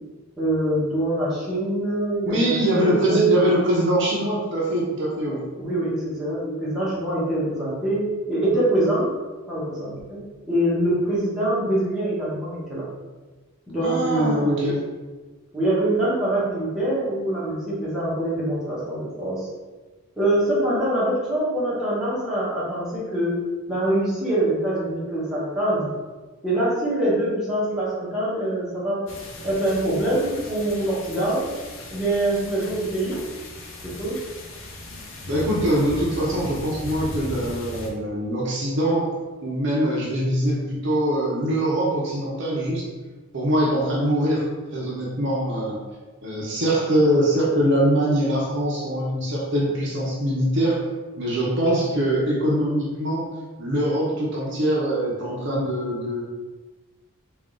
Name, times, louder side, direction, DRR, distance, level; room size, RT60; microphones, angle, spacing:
voice 1, 0.4-3.3 5.3-9.1 9.5-10.2 10.5-12.8 13.7-14.8 15.5-19.5 20.2-23.4 23.7-25.9 26.4-29.0 29.4-31.5 31.9-33.2 33.8-34.2, right 1 dB, 5° right, -10 dB, 1.2 m, -24 dB
voice 2, 2.2-5.4 13.8-14.8 35.3-39.1 39.4-42.9 43.3-44.4 44.7-45.8 46.2-50.8 51.2-53.3 53.6-56.2, right 1 dB, 55° right, -4 dB, 0.8 m, -23 dB
sound 1, 29.1-37.9, left 1 dB, 60° left, 0.7 m, -37 dB
3.8 x 2.6 x 3.7 m, 1.3 s
head